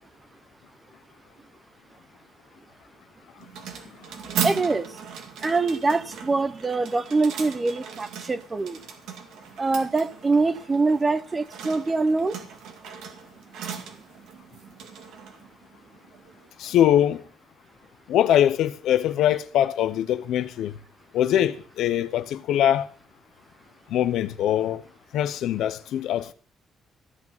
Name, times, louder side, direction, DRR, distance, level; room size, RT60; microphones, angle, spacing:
sound 1, 3.4-16.5, right 8 dB, 85° right, 2.2 m, -38 dB
voice 1, 4.4-4.9 5.4-8.8 9.6-12.4, right 3 dB, 20° right, 0.8 m, -24 dB
voice 2, 16.6-17.2 18.1-20.7 21.1-22.9 23.9-24.8 25.1-26.3, left 11 dB, 80° left, 1.0 m, -22 dB
15.0 x 6.2 x 9.2 m
cardioid pair, 125°, 0 cm